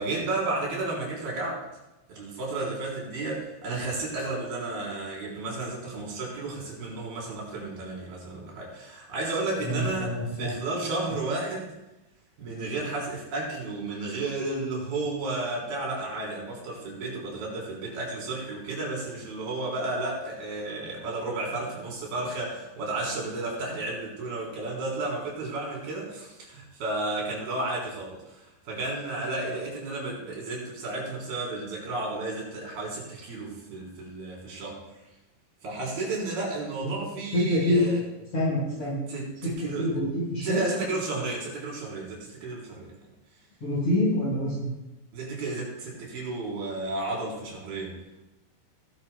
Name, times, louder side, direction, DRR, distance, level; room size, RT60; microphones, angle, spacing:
voice 1, 0.0-1.6 2.1-11.7 12.4-34.8 35.6-38.0 39.1-39.9 40.4-42.9 45.1-48.0, right 2 dB, 65° right, -3 dB, 5.7 m, -32 dB
voice 2, 9.6-10.5 36.8-36.9 37.3-37.9 38.3-39.0 39.4-39.5 39.8-40.6 43.6-44.7, left 1 dB, 40° left, -8 dB, 5.5 m, -26 dB
20.5 x 11.5 x 2.3 m, 0.99 s
omnidirectional pair, 4.7 m